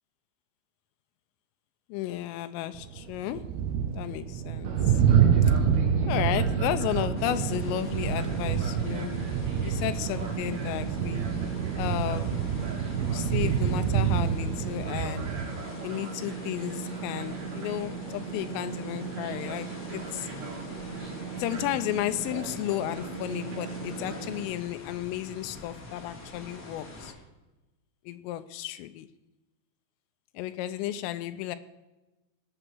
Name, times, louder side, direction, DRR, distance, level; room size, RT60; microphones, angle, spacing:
voice 1, 1.9-3.5 3.9-5.0 6.1-9.1 9.6-11.2 11.8-12.3 13.1-15.3 15.8-20.3 21.4-27.1 28.1-29.1 30.3-31.6, left 13 dB, 85° left, 10 dB, 3.3 m, -33 dB
sound 1, 2.7-15.5, right 8 dB, 80° right, 2.3 m, -27 dB
Fixed-wing aircraft airplane, 4.6-24.4, right 5 dB, 55° right, 2.2 m, -38 dB
sound 2, 7.2-27.1, left 2 dB, 40° left, 1.5 m, -46 dB
19.5 x 8.0 x 6.2 m, 1.1 s
omnidirectional pair, 5.7 m